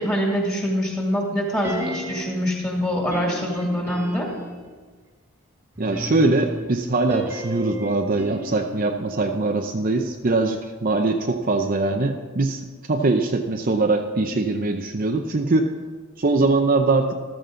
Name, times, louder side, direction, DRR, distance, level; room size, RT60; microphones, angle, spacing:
voice 1, 0.0-4.3, equal, 15° left, -2 dB, 2.2 m, -24 dB
sound 1, 1.6-2.5 3.1-4.7 5.7-10.0 10.2-10.3, equal, 10° right, 1.5 m, -34 dB
voice 2, 5.8-15.7 16.2-17.1, right 3 dB, 40° right, 4 dB, 0.6 m, -22 dB
14.0 x 13.5 x 3.8 m, 1.4 s
head